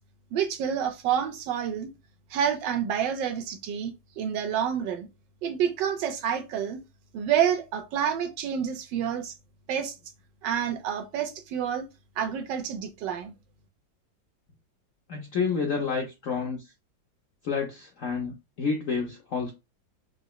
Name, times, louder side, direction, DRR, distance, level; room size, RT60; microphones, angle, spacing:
voice 1, 0.3-1.9 2.3-5.1 5.4-6.8 7.1-9.3 9.7-9.9 10.4-11.8 12.2-13.3, right 8 dB, 75° right, 1.2 m, -28 dB
voice 2, 15.1-16.7 17.4-19.5, left 5 dB, 70° left, 0.7 m, -29 dB
4.9 x 2.0 x 2.2 m
omnidirectional pair, 2.0 m